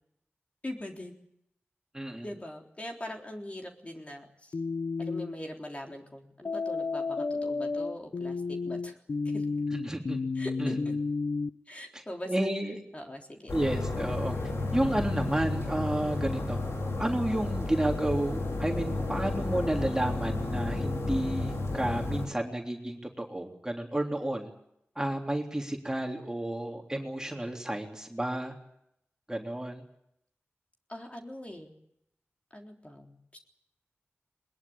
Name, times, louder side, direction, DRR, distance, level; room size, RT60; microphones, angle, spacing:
voice 1, 0.6-1.1 2.2-4.5 5.0-9.0 9.3-9.4 10.4-10.9 11.7-12.3 12.9-13.5 30.9-31.7 32.5-33.4, left 1 dB, 30° left, 1 dB, 3.7 m, -42 dB
voice 2, 1.9-2.3 9.7-10.2 10.6-10.8 11.9-12.8 13.5-14.4 14.7-16.6 17.0-24.5 25.0-28.5 29.3-29.8, right 1 dB, 15° right, 1 dB, 3.3 m, -31 dB
sound 1, 4.5-5.3 6.5-11.5, left 4 dB, 70° left, 1.0 m, -31 dB
sound 2, 13.5-22.3, left 2 dB, 85° left, 4.6 m, -32 dB
21.5 x 21.0 x 8.8 m, 0.76 s
wide cardioid pair, 80°, 5 cm